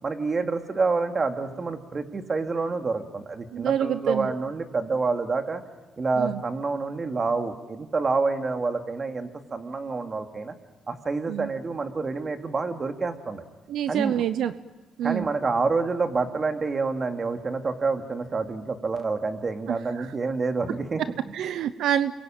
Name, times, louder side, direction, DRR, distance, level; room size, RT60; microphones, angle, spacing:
voice 1, 0.0-5.6 6.0-10.6 10.9-13.4 13.9-14.2 15.0-21.3, right 4 dB, 35° right, 6 dB, 2.6 m, -28 dB
voice 2, 3.5-4.3 6.2-6.4 11.3-11.5 13.7-14.5 15.0-15.3 19.7-19.8 21.3-22.1, right 10 dB, 80° right, 12 dB, 0.8 m, -26 dB
29.0 x 22.5 x 9.1 m, 1.2 s
cardioid pair, 90°, 0 cm